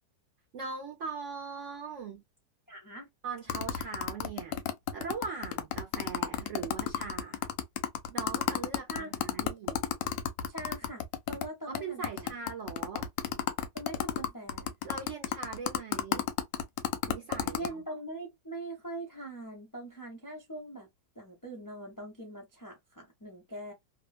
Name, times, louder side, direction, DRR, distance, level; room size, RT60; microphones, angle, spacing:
voice 1, 0.5-2.2 3.2-4.6 4.9-7.5 8.1-9.8 11.7-13.1 14.8-16.3 17.1-17.8, right 5 dB, 60° right, 0.8 m, -40 dB
voice 2, 2.7-3.1 8.9-9.4 10.5-12.3 13.7-14.7 17.5-20.9 21.1-23.7, right 1 dB, 25° left, 0.4 m, -42 dB
sound 1, 3.5-11.5 11.7-11.8 12.0-17.7, left 10 dB, 80° left, 1.3 m, -31 dB
3.0 x 2.1 x 2.3 m
omnidirectional pair, 2.0 m